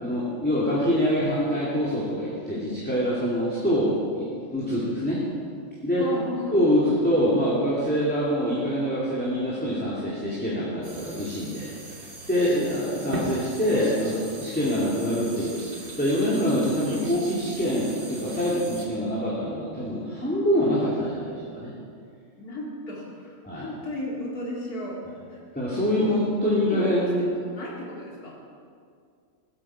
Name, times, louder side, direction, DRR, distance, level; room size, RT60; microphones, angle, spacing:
voice 1, 0.0-5.2 5.8-6.1 6.5-11.7 12.0-14.1 14.4-21.7 23.4-23.7 25.5-27.3, equal, 5° left, -8 dB, 2.6 m, -25 dB
voice 2, 6.0-6.8 13.8-15.0 22.4-25.0 25.3-25.4 25.9-26.1 26.5-28.4, left 2 dB, 80° left, -4 dB, 3.0 m, -35 dB
sound 1, 10.8-18.9, right 2 dB, 65° right, 2.5 m, -39 dB
17.0 x 13.0 x 4.9 m, 2.3 s
omnidirectional pair, 1.6 m